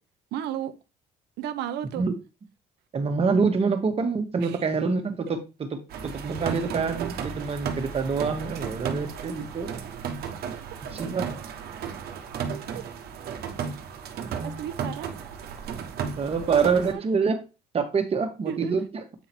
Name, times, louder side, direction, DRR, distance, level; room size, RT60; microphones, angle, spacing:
voice 1, 0.3-0.7 1.4-2.0 4.4-4.6 12.7-12.8 14.4-15.1 16.5-16.6 16.9-17.0 18.5-18.7, right 11 dB, 85° right, 0.8 m, -33 dB
voice 2, 2.9-9.7 10.9-11.3 16.2-17.4 17.7-19.0, right 5 dB, 35° right, 1.6 m, -26 dB
sound 1, 5.9-16.9, right 6 dB, 70° right, 1.3 m, -34 dB
8.3 x 3.9 x 4.5 m
cardioid pair, 110°, 17 cm